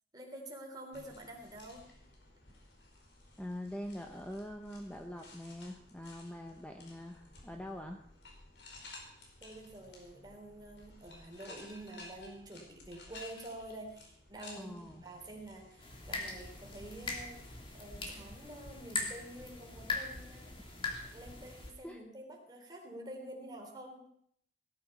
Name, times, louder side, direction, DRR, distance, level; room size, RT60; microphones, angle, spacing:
voice 1, 0.1-1.9 9.4-20.5 21.1-24.1, right 1 dB, 25° right, 1 dB, 3.6 m, -48 dB
sound 1, 0.9-18.2, left 2 dB, 85° left, 4.8 m, -55 dB
voice 2, 3.4-8.0 14.6-15.0 21.8-22.0, left 1 dB, 5° left, 3 dB, 1.0 m, -44 dB
sound 2, 15.8-21.7, left 3 dB, 30° left, 3.0 m, -41 dB
18.0 x 11.5 x 5.6 m, 0.65 s
head